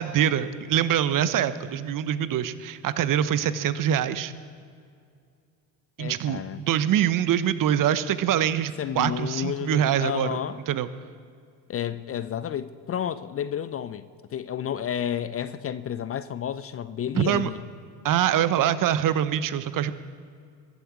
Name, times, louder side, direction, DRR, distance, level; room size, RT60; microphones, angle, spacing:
voice 1, 0.0-4.3 6.0-10.3 10.7-10.9 17.2-17.5 18.0-19.9, right 10 dB, 40° right, 1.0 m, -24 dB
voice 2, 6.0-6.6 8.8-10.6 11.7-14.0 14.3-17.6, left 9 dB, 30° left, 0.6 m, -31 dB
22.0 x 11.5 x 4.7 m
figure-of-eight pair, 65°, 50 cm